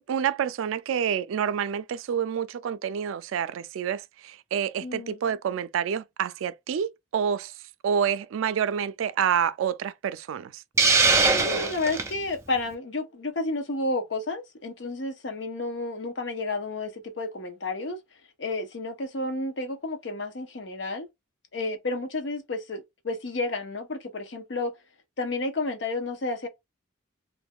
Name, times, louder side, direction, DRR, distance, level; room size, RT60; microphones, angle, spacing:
voice 1, 0.0-7.5 7.8-10.6, right 8 dB, 80° right, 0.3 m, -28 dB
voice 2, 4.8-5.2 11.3-18.0 18.4-21.1 21.5-24.7 25.2-26.5, left 2 dB, 60° left, 0.7 m, -31 dB
Hiss, 10.8-12.1, right 4 dB, 15° right, 0.4 m, -21 dB
2.6 x 2.3 x 3.5 m
head